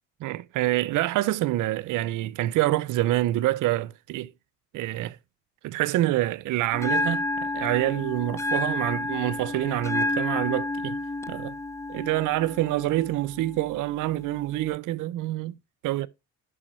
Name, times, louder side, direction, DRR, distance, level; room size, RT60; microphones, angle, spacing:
voice 1, 0.2-4.3 4.7-5.2 5.6-11.0 11.3-11.5 11.9-15.5 15.8-16.1, right 16 dB, 90° right, 0.6 m, -26 dB
Bell, 6.7-14.7, left 2 dB, 10° left, 0.4 m, -31 dB
11.0 x 4.9 x 4.4 m
cardioid pair, 90°, 30 cm